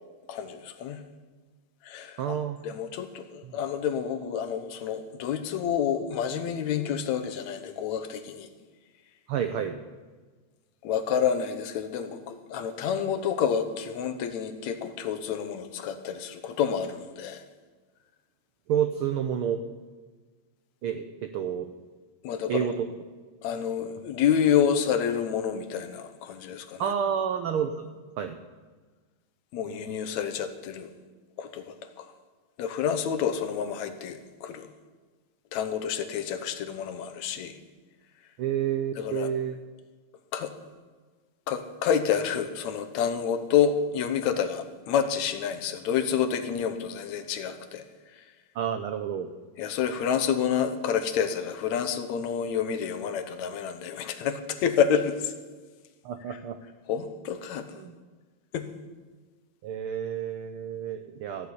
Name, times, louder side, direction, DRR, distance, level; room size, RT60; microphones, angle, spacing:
voice 1, 0.3-1.0 1.8-2.4 2.6-8.5 10.8-17.4 22.2-22.7 23.4-26.9 29.5-30.9 31.4-32.1 32.6-34.7 35.5-37.6 39.0-39.3 40.3-40.5 41.5-47.8 49.6-55.3 56.3-56.4 56.9-57.7 58.5-58.7, left 8 dB, 75° left, 8 dB, 2.2 m, -28 dB
voice 2, 2.2-2.6 3.4-3.5 9.3-9.8 18.7-19.6 20.8-21.7 22.5-22.8 26.8-27.7 28.2-28.4 29.7-30.1 38.4-39.6 48.5-49.3 56.0-56.6 57.7-57.9 59.6-61.5, right 8 dB, 80° right, 8 dB, 1.2 m, -29 dB
14.5 x 7.0 x 9.7 m, 1.4 s
omnidirectional pair, 3.3 m